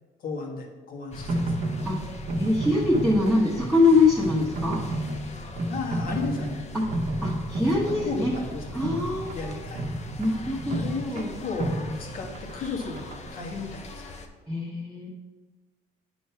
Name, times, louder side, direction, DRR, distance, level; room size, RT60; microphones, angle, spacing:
voice 1, 0.2-1.4 5.7-6.6 7.9-8.8 9.3-9.9 10.7-13.1 13.3-14.0, left 4 dB, 55° left, 0 dB, 1.6 m, -34 dB
sound 1, 1.1-14.3, left 2 dB, 40° left, 0.8 m, -41 dB
sound 2, 1.1-13.3, right 1 dB, 45° right, 1.1 m, -32 dB
voice 2, 2.4-4.8 6.7-6.9 7.2-8.3 8.7-9.6 10.2-10.8 11.0-11.3 14.5-15.1, left 2 dB, ahead, -7 dB, 1.2 m, -23 dB
9.2 x 3.2 x 5.7 m, 1.3 s
cardioid pair, 110°, 17 cm